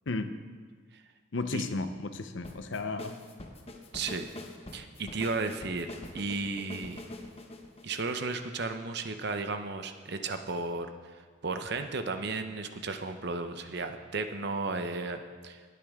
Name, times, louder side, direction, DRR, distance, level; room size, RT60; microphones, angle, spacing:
voice 1, 1.3-3.1, left 3 dB, 65° left, 9 dB, 0.7 m, -33 dB
sound 1, 2.4-8.7, left 1 dB, 30° left, 0.9 m, -45 dB
voice 2, 3.9-4.3 4.7-7.0 7.8-15.6, right 3 dB, 55° right, 8 dB, 0.8 m, -34 dB
19.5 x 8.5 x 3.6 m, 1.5 s
head